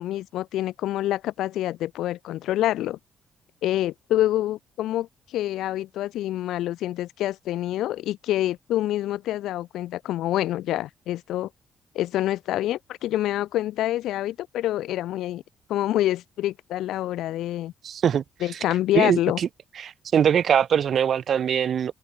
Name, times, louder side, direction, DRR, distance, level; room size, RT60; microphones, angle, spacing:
voice 1, 0.0-3.0 3.6-11.5 11.9-15.4 15.7-17.7 18.4-19.4, left 14 dB, 90° left, 2.9 m, -26 dB
voice 2, 17.8-18.2 18.5-18.6 18.9-19.5 19.8-21.9, right 8 dB, 50° right, 1.8 m, -22 dB
cardioid pair, 135°, 0 cm